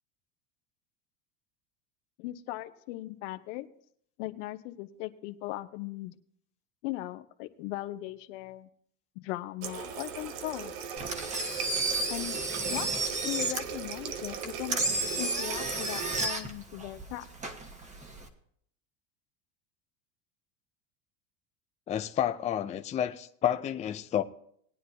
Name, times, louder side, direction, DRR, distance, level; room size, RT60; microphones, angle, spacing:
voice 1, 2.2-3.7 4.2-6.1 6.8-8.7 9.1-10.7 12.1-12.4 12.7-14.8 15.2-17.2, left 17 dB, 80° left, 1.1 m, -38 dB
Water tap faucet, 9.6-16.3, right 7 dB, 75° right, 1.3 m, -38 dB
Engine, 11.0-18.3, right 2 dB, 20° right, 1.4 m, -33 dB
voice 2, 21.9-24.2, left 10 dB, 20° left, 0.5 m, -30 dB
20.0 x 9.6 x 2.8 m
cardioid pair, 140°, 37 cm